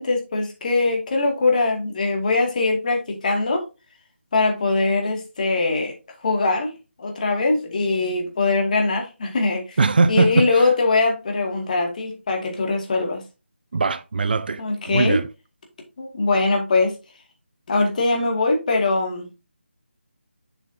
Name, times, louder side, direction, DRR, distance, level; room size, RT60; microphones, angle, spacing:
voice 1, 0.0-3.6 4.3-5.9 6.2-6.7 7.0-9.8 10.1-13.2 14.6-15.2 16.0-17.0 17.7-19.3, left 3 dB, 40° left, 2.3 m, -22 dB
voice 2, 9.8-10.5 13.7-14.6 14.9-15.3, right 4 dB, 50° right, 0.6 m, -20 dB
7.2 x 7.0 x 2.8 m
figure-of-eight pair, 160°, 6 cm